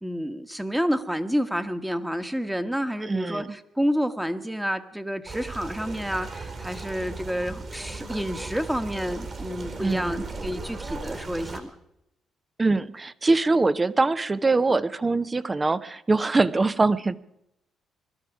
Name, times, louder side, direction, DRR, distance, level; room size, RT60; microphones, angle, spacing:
voice 1, 0.0-11.7, equal, 5° right, 9 dB, 1.4 m, -29 dB
voice 2, 3.1-3.5 9.8-10.2 12.6-17.2, right 3 dB, 25° right, 16 dB, 0.8 m, -23 dB
sound 1, 5.2-11.6, right 3 dB, 45° right, 4.1 m, -37 dB
22.0 x 13.0 x 4.9 m, 0.81 s
cardioid pair, 75°, 0 cm